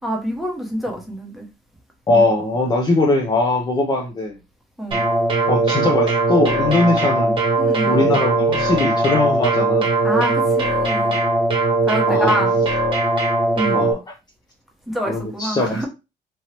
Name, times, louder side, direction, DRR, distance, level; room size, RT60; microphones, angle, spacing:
voice 1, 0.0-1.5 4.8-5.0 7.6-8.2 10.0-11.2 11.9-12.6 13.6-13.8 14.9-15.9, equal, ahead, 1.0 m, -26 dB
voice 2, 2.1-4.4 5.5-7.4 7.9-9.9 12.1-12.4 13.7-14.0 15.1-15.8, left 2 dB, 25° left, 0.5 m, -20 dB
sound 1, 4.9-13.9, right 2 dB, 30° right, 1.0 m, -19 dB
3.0 x 2.7 x 2.9 m
cardioid pair, 110°, 17 cm